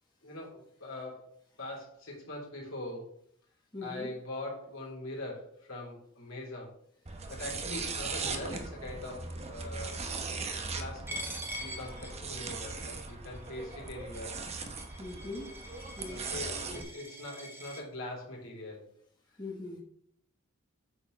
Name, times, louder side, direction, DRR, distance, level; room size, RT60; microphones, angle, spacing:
voice 1, 0.2-1.3 1.6-3.2 3.8-6.7 7.3-10.0 10.7-14.4 16.1-18.9, left 1 dB, 70° left, -3 dB, 3.6 m, -42 dB
voice 2, 3.7-4.1 7.7-7.8 15.0-15.5 16.0-16.2 16.7-16.8 19.4-19.8, left 2 dB, 20° left, -3 dB, 1.4 m, -41 dB
sound 1, 7.1-16.8, right 4 dB, 30° right, 0.9 m, -39 dB
Coin (dropping), 11.1-17.8, equal, 10° right, 1.5 m, -44 dB
9.0 x 6.9 x 3.5 m, 0.66 s
head